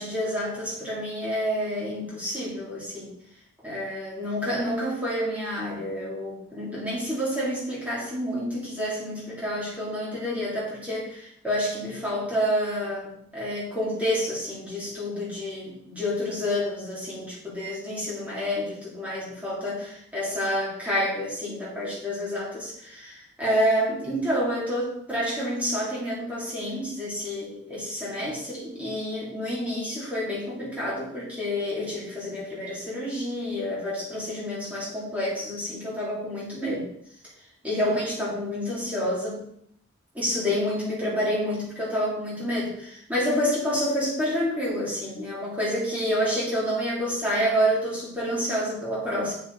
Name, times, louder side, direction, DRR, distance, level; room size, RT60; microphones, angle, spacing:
voice 1, 0.0-3.1 3.6-36.9 37.6-39.4 40.1-49.4, equal, 5° right, -7 dB, 3.3 m, -28 dB
8.1 x 6.8 x 4.2 m, 0.71 s
head